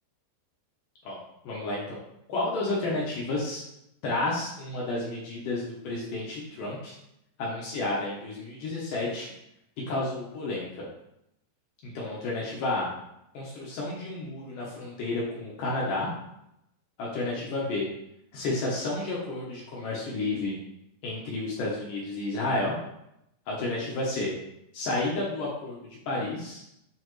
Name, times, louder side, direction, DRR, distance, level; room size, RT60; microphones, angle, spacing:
voice 1, 1.4-2.0 2.3-3.6 4.0-7.0 7.4-9.3 9.9-10.9 11.8-12.9 13.3-16.1 17.0-17.9 18.3-20.6 21.0-22.8 23.5-24.3 24.7-25.8 26.1-26.6, left 2 dB, 70° left, -5 dB, 2.2 m, -31 dB
8.8 x 3.8 x 3.2 m, 0.82 s
omnidirectional pair, 4.9 m